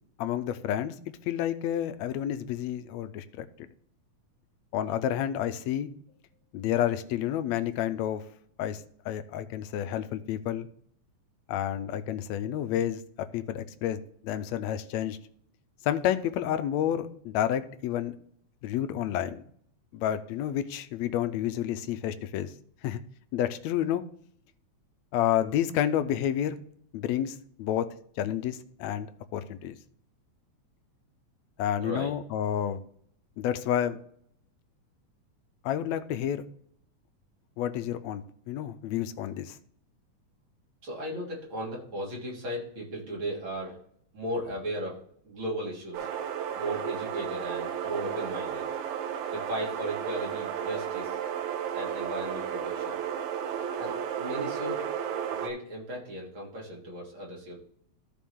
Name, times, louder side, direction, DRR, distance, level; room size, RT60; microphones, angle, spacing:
voice 1, 0.2-1.0 1.3-3.7 4.7-5.9 6.5-8.2 8.6-10.7 11.5-13.0 13.3-15.2 15.8-18.1 18.6-19.4 19.9-22.5 22.8-23.0 23.3-24.0 25.1-26.6 26.9-27.9 28.2-29.8 31.6-32.8 33.4-34.0 35.6-36.4 37.6-39.6, left 10 dB, 75° left, 10 dB, 1.8 m, -30 dB
voice 2, 31.8-32.1 40.8-43.8 44.1-45.0 45.2-46.1 46.6-48.7 49.3-51.2 51.7-53.0 53.8-54.8 55.3-57.6, right 1 dB, 45° right, -4 dB, 3.6 m, -36 dB
sound 1, 45.9-55.5, right 8 dB, 80° right, 2.2 m, -33 dB
13.5 x 5.0 x 3.6 m, 0.64 s
omnidirectional pair, 3.4 m